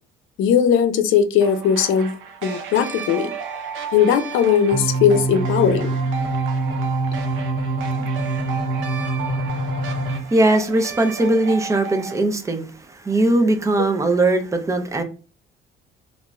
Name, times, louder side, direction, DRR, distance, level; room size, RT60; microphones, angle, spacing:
voice 1, 0.4-2.1 2.4-3.3 3.9-5.9, left 8 dB, 80° left, 0.5 m, -18 dB
sound 1, 1.4-12.2, right 5 dB, 80° right, 0.7 m, -34 dB
sound 2, 4.7-10.2, right 2 dB, 45° right, 1.4 m, -24 dB
voice 2, 10.3-15.0, right 2 dB, 15° right, 0.5 m, -20 dB
2.5 x 2.3 x 3.0 m
cardioid pair, 130°, 20 cm